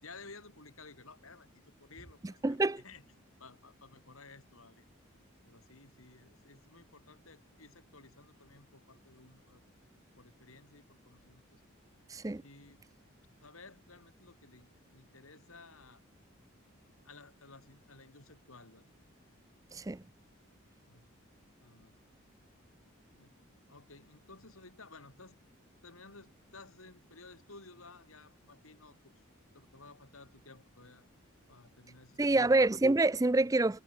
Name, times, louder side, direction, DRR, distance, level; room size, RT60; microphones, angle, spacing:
voice 1, 0.0-3.0 3.4-4.9 5.5-9.6 10.2-11.6 12.4-12.9 13.4-16.0 17.0-18.9 20.9-21.1 21.6-22.0 23.2-23.4 23.7-25.4 25.8-29.2 29.5-31.1 31.5-32.5, left 3 dB, 85° left, 5.4 m, -55 dB
voice 2, 2.4-2.8 12.1-12.4 19.7-20.0 32.2-33.8, right 2 dB, 15° right, 0.4 m, -26 dB
head